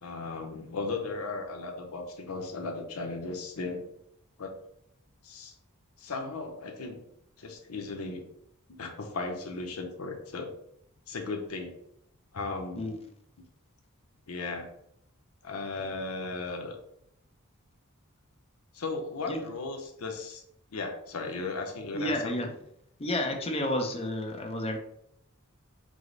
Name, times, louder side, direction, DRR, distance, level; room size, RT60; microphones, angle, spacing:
voice 1, 0.0-3.8 4.4-4.5 5.2-5.5 6.0-7.0 7.4-8.2 8.7-10.5 11.1-11.7 12.3-12.9 14.3-14.7 15.4-16.8 18.7-20.4 20.7-22.5, left 3 dB, 85° left, 3 dB, 0.7 m, -36 dB
voice 2, 21.9-22.5 23.0-24.8, left 1 dB, 30° left, 3 dB, 0.5 m, -30 dB
4.8 x 2.0 x 3.8 m, 0.74 s
head